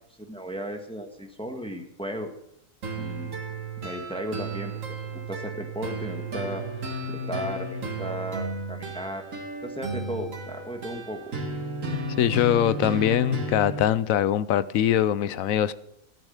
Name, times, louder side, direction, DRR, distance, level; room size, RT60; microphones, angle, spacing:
voice 1, 0.2-2.3 3.0-3.3 3.8-4.7 5.0-6.6 7.1-9.3 9.6-11.3, equal, 5° left, 1.5 m, -35 dB
sound 1, 2.8-13.8, right 2 dB, 70° right, 2.2 m, -33 dB
voice 2, 12.2-15.7, left 10 dB, 80° left, 1.1 m, -22 dB
14.5 x 9.1 x 6.4 m
omnidirectional pair, 1.4 m